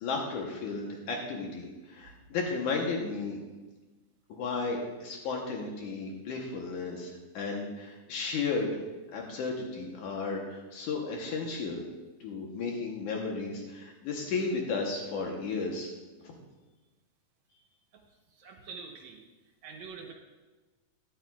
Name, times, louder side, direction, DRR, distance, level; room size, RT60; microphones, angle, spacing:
voice 1, 0.0-3.4 4.3-8.8 9.1-11.8 12.2-15.9 16.2-16.3, left 4 dB, 75° left, 0 dB, 2.4 m, -34 dB
voice 2, 18.4-19.2 19.6-20.1, right 5 dB, 65° right, 2 dB, 2.2 m, -45 dB
13.0 x 11.5 x 2.4 m, 1.2 s
omnidirectional pair, 3.7 m